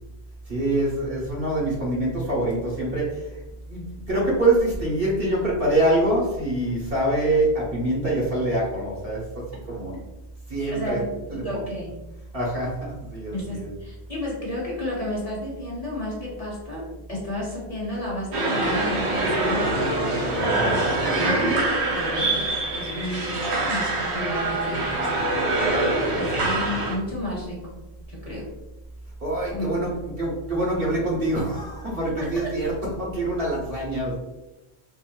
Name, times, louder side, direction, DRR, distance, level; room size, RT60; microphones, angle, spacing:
voice 1, 0.5-3.4 3.7-9.9 10.5-11.0 11.3-11.6 12.3-13.7 20.4-20.8 21.1-21.4 26.2-26.5 29.2-34.2, right 1 dB, 60° right, -5 dB, 1.3 m, -25 dB
voice 2, 10.7-12.0 13.3-25.4 26.1-27.8 28.1-28.5 29.5-29.7 32.2-32.3, left 1 dB, 35° left, -5 dB, 0.9 m, -32 dB
sound 1, 18.3-26.9, right 2 dB, 85° right, 1.1 m, -24 dB
3.8 x 2.6 x 2.4 m, 0.98 s
omnidirectional pair, 1.1 m